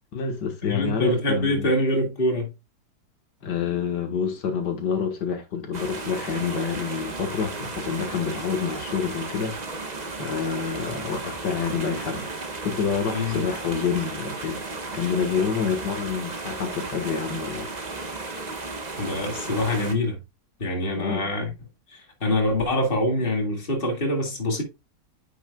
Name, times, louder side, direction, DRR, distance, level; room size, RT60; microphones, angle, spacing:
voice 1, 0.1-1.7 3.4-9.5 10.2-12.3 12.6-14.6 14.9-17.7 21.0-21.3, left 6 dB, 85° left, 2.1 m, -27 dB
voice 2, 0.6-2.5 13.1-13.4 19.0-20.2 20.6-21.5 21.9-24.6, left 1 dB, 30° left, 2.3 m, -25 dB
sound 1, 5.7-19.9, right 3 dB, 30° right, 1.1 m, -34 dB
9.2 x 6.4 x 2.3 m
omnidirectional pair, 1.8 m